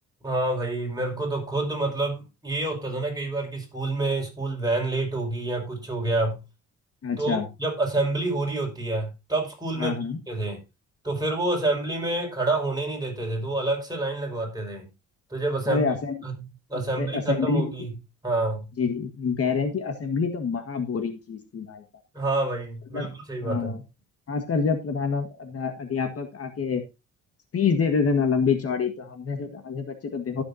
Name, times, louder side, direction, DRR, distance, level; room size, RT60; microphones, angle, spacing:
voice 1, 0.2-6.4 7.2-10.0 10.3-10.6 11.0-14.9 15.3-15.9 16.2-16.3 16.7-17.9 18.2-18.6 22.1-23.7, right 2 dB, 15° right, 5.5 m, -28 dB
voice 2, 7.0-7.5 9.8-10.2 15.7-16.2 17.0-17.7 18.8-21.8 22.9-23.1 23.4-23.8 24.3-26.8 27.5-30.4, left 5 dB, 50° left, 1.8 m, -26 dB
16.5 x 7.1 x 2.8 m
cardioid pair, 90°, 30 cm